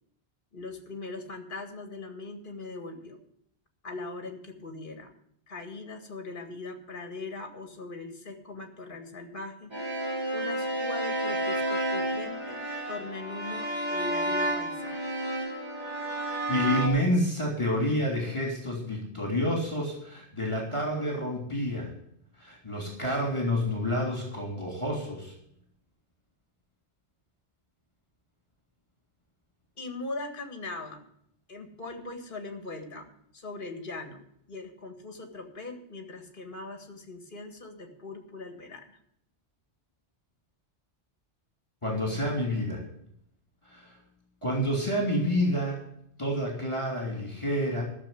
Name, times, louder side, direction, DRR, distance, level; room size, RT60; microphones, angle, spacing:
voice 1, 0.5-3.2 3.8-5.1 5.5-9.8 10.3-15.1 29.8-31.1 31.5-39.0, left 3 dB, 50° left, 4 dB, 2.0 m, -40 dB
sound 1, 9.7-16.9, right 1 dB, 40° right, 3.8 m, -31 dB
voice 2, 16.5-21.9 22.4-25.3 41.8-42.8 43.6-44.0 44.4-45.8 46.2-47.8, equal, 25° left, -1 dB, 3.3 m, -28 dB
13.5 x 7.0 x 8.5 m, 0.71 s
omnidirectional pair, 1.2 m